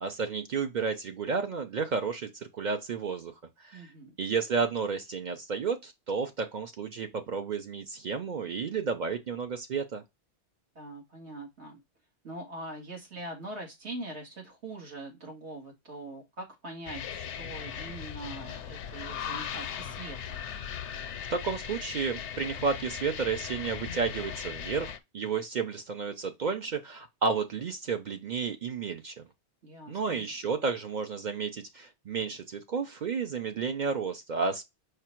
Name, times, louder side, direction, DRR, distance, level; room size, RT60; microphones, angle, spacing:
voice 1, 0.0-3.3 3.6-3.9 4.2-10.0 20.8-20.9 21.3-29.2 29.9-34.6, right 5 dB, 55° right, 0.6 m, -32 dB
voice 2, 3.7-4.1 10.8-11.8 12.2-20.4 29.6-30.3, right 2 dB, 75° right, 2.0 m, -43 dB
sound 1, 16.9-25.0, left 8 dB, 85° left, 0.9 m, -38 dB
5.0 x 2.3 x 4.3 m
omnidirectional pair, 1.2 m